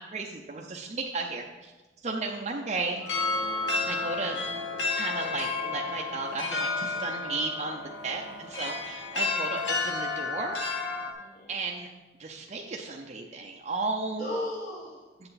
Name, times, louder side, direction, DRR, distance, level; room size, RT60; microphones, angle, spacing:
voice 1, 0.0-1.7 2.0-3.0 3.9-4.4 5.0-10.6 11.5-11.9 12.2-14.3 15.2-15.3, right 3 dB, 35° right, -1 dB, 0.6 m, -34 dB
sound 1, 3.0-11.1, left 3 dB, 75° left, 1.1 m, -31 dB
voice 2, 3.6-4.4 6.3-6.6 6.9-7.4 8.2-8.5 9.1-9.3 11.1-11.5 14.2-15.0, left 1 dB, 40° left, -6 dB, 1.5 m, -39 dB
7.8 x 7.6 x 4.1 m, 1.2 s
head